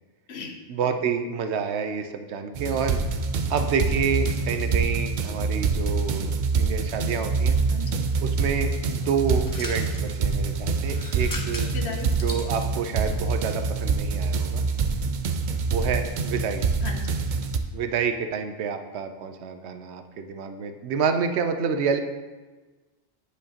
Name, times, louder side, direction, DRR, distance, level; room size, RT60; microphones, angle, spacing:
voice 1, 0.7-3.0 3.5-7.6 8.2-11.7 12.2-14.6 15.7-16.6 17.7-22.0, right 6 dB, 85° right, 7 dB, 0.9 m, -28 dB
sound 1, 2.5-17.6, right 4 dB, 60° right, 0.6 m, -26 dB
voice 2, 7.7-8.0 11.7-12.1 16.8-17.1, left 4 dB, 75° left, 3 dB, 1.1 m, -35 dB
sound 2, 9.3-10.1 10.8-12.5, left 2 dB, 25° left, 0.6 m, -38 dB
9.8 x 5.2 x 2.8 m, 1.3 s
omnidirectional pair, 1.1 m